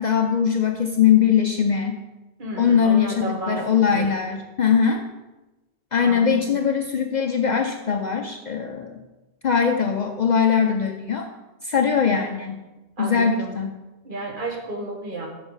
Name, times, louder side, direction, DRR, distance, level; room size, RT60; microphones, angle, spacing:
voice 1, 0.0-2.0 2.6-5.0 5.9-9.0 9.4-11.3 11.6-12.6 13.0-13.7, left 7 dB, 55° left, 5 dB, 0.5 m, -21 dB
voice 2, 2.4-4.1 6.0-6.7 13.0-13.6 14.0-15.3, right 2 dB, 50° right, -1 dB, 1.5 m, -32 dB
6.4 x 6.3 x 4.7 m, 1.1 s
omnidirectional pair, 1.1 m